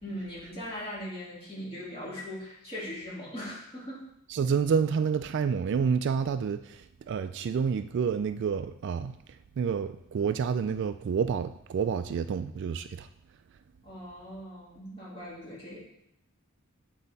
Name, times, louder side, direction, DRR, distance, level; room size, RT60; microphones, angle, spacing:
voice 1, 0.0-4.0 13.8-15.8, equal, 25° left, 3.0 m, -40 dB
voice 2, 4.3-6.8 7.1-9.2 9.6-13.1, right 6 dB, 55° right, 0.3 m, -28 dB
8.9 x 4.2 x 4.1 m
head